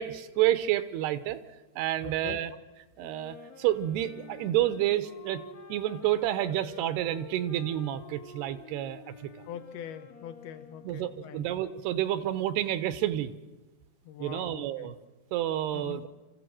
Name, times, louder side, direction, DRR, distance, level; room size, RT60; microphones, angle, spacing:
voice 1, 0.0-1.4 1.8-2.5 3.0-5.4 5.7-9.1 10.8-13.3 14.2-14.9 15.3-16.1, right 13 dB, 80° right, 12 dB, 2.8 m, -29 dB
voice 2, 2.0-2.5 9.5-11.5 14.0-14.9 15.7-16.0, left 8 dB, 75° left, 9 dB, 2.8 m, -43 dB
Wind instrument woodwind instrument, 2.9-11.3, left 5 dB, 40° left, 1.3 m, -50 dB
26.0 x 14.5 x 7.6 m, 1.1 s
omnidirectional pair, 4.8 m